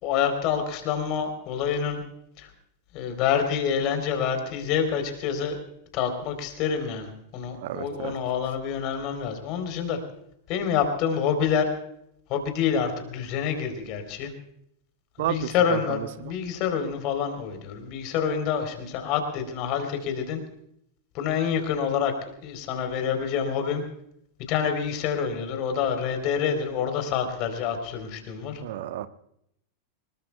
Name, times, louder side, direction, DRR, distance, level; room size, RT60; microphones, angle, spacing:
voice 1, 0.0-2.0 2.4-2.5 2.9-5.6 5.9-10.0 10.5-11.7 12.3-14.3 15.2-20.4 21.1-22.1 22.4-23.8 24.5-28.6, left 7 dB, 40° left, 7 dB, 3.8 m, -27 dB
voice 2, 7.6-8.2 15.2-16.3 28.6-29.1, right 12 dB, 55° right, 13 dB, 0.9 m, -32 dB
26.0 x 21.5 x 2.3 m, 0.74 s
figure-of-eight pair, 90°, 0 cm